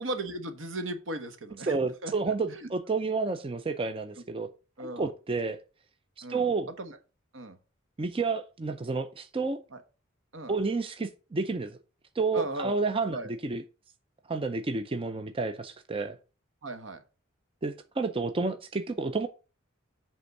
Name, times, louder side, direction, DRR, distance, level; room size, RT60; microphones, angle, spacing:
voice 1, 0.0-2.7 4.8-5.1 6.2-6.5 6.8-7.0 7.3-7.6 9.7-9.8 10.3-10.5 12.3-12.7 13.1-13.3 16.6-17.0, right 1 dB, 70° right, 1.2 m, -37 dB
voice 2, 1.7-4.5 4.8-5.6 6.2-6.7 8.0-9.6 10.5-11.8 12.2-13.6 14.3-16.2 17.6-19.3, right 4 dB, 30° right, 0.5 m, -30 dB
7.9 x 3.6 x 6.4 m
head